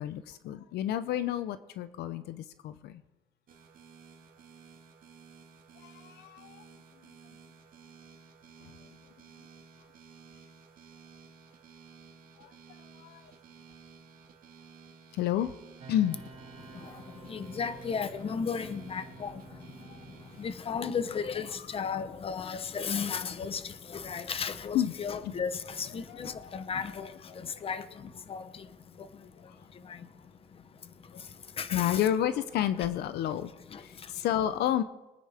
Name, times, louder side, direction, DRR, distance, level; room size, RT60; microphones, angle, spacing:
voice 1, 0.0-3.0 5.8-6.7 12.4-12.5 13.0-13.3 15.1-15.5 15.9-16.2 19.8-20.0 24.7-24.9 25.2-25.3 26.1-26.6 27.0-27.4 29.4-29.5 31.1-31.2 31.7-33.5 33.8-34.8, left 11 dB, 75° left, 0.7 m, -31 dB
sound 1, 3.5-20.7, right 6 dB, 55° right, 1.9 m, -55 dB
sound 2, 15.8-28.6, right 4 dB, 35° right, 1.7 m, -54 dB
voice 2, 17.3-19.3 20.4-21.5 21.7-23.6 23.9-25.5 25.8-27.1 27.6-27.8 28.3-28.4 31.6-32.1, left 6 dB, 35° left, 0.9 m, -34 dB
23.5 x 9.5 x 3.5 m
cardioid pair, 110°, 17 cm